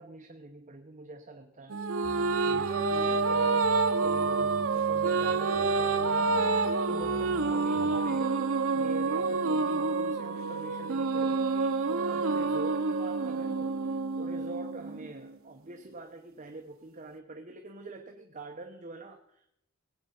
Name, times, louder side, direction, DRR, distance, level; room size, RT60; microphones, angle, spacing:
voice 1, 0.0-1.8 2.5-3.7 4.0-6.3 6.8-8.4 8.7-11.5 11.8-13.7 14.2-19.5, right 2 dB, 35° right, 4 dB, 0.9 m, -45 dB
sound 1, 1.7-15.3, right 4 dB, 65° right, 0.8 m, -28 dB
sound 2, 2.0-8.0, equal, 15° right, 2.5 m, -49 dB
20.0 x 8.7 x 5.4 m, 0.80 s
head